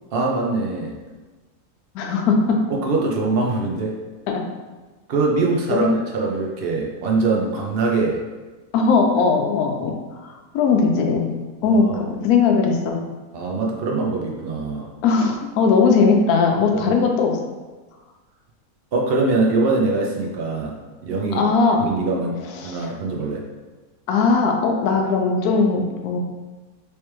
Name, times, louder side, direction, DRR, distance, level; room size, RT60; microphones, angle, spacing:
voice 1, 0.1-0.9 2.7-4.0 5.1-8.2 11.6-12.2 13.3-14.9 16.8-17.0 18.9-21.4 21.9-23.4, right 3 dB, 75° right, -1 dB, 0.5 m, -23 dB
voice 2, 1.9-2.6 4.3-4.4 5.8-5.9 8.7-9.9 10.2-11.3 11.6-13.0 15.0-17.4 21.3-21.8 22.6-22.9 24.1-26.2, left 4 dB, 75° left, 2 dB, 1.1 m, -19 dB
3.3 x 3.2 x 3.0 m, 1.3 s
omnidirectional pair, 1.6 m